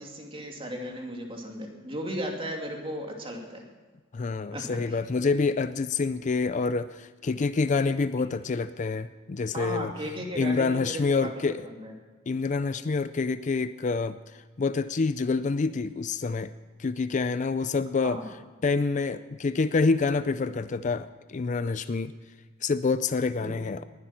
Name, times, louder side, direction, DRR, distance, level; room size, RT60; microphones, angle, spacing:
voice 1, 0.0-3.6 4.5-5.0 9.5-11.9 18.0-18.2 23.4-23.5, equal, 30° right, 1 dB, 2.5 m, -36 dB
voice 2, 4.1-9.9 10.4-11.6 12.3-14.2 14.6-16.5 16.8-18.2 18.6-22.1 22.6-23.8, left 4 dB, 40° left, 13 dB, 0.4 m, -27 dB
19.5 x 11.5 x 5.9 m, 1.3 s
head